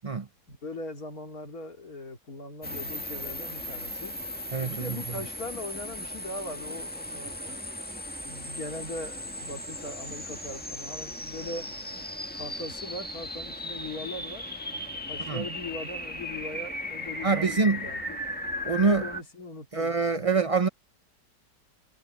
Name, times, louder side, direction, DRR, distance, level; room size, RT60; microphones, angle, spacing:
voice 1, 0.5-4.1 4.7-7.6 8.2-11.7 12.4-14.5 15.1-18.2 18.8-20.5, left 1 dB, 55° left, 3.6 m, -40 dB
sound 1, 2.6-19.2, left 1 dB, 5° left, 1.3 m, -37 dB
voice 2, 4.5-5.0 15.3-15.4 17.2-17.9 18.6-19.0 19.7-20.7, right 4 dB, 50° right, 0.4 m, -25 dB
omnidirectional pair, 1.9 m